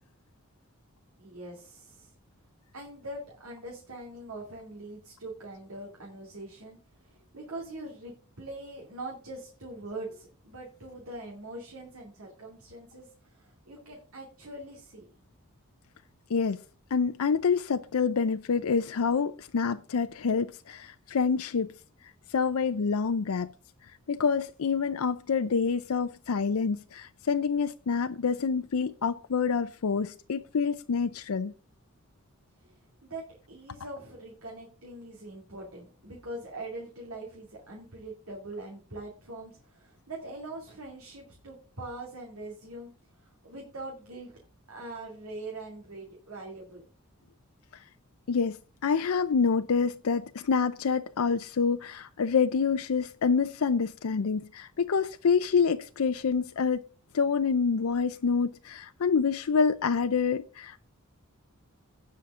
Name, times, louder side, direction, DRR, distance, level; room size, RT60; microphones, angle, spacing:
voice 1, 1.2-2.1 2.7-15.1 32.6-42.9 43.2-44.4 44.7-46.8, right 2 dB, 75° right, 2.7 m, -43 dB
voice 2, 16.3-16.6 16.9-21.7 22.3-23.5 24.1-31.5 48.3-48.6 48.8-56.8 57.1-60.8, left 5 dB, 80° left, 0.5 m, -27 dB
17.0 x 5.8 x 3.7 m
head